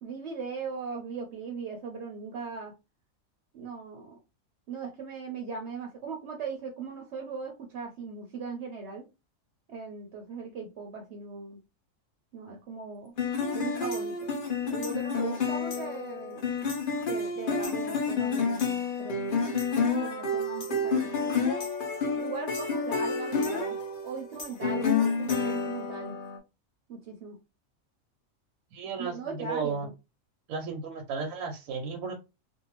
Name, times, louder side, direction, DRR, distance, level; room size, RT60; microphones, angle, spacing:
voice 1, 0.0-2.7 3.5-4.1 4.7-9.1 9.7-11.6 12.3-13.1 13.5-14.3 14.6-16.6 17.1-19.1 20.0-21.1 22.1-23.8 24.0-26.2 26.9-27.4 29.0-29.9, right 4 dB, 60° right, 1 dB, 0.8 m, -39 dB
sound 1, 13.2-26.4, left 4 dB, 50° left, 0.6 m, -29 dB
voice 2, 28.7-29.9 30.5-32.1, right 5 dB, 85° right, 2 dB, 1.0 m, -34 dB
2.6 x 2.2 x 2.9 m, 0.27 s
omnidirectional pair, 1.4 m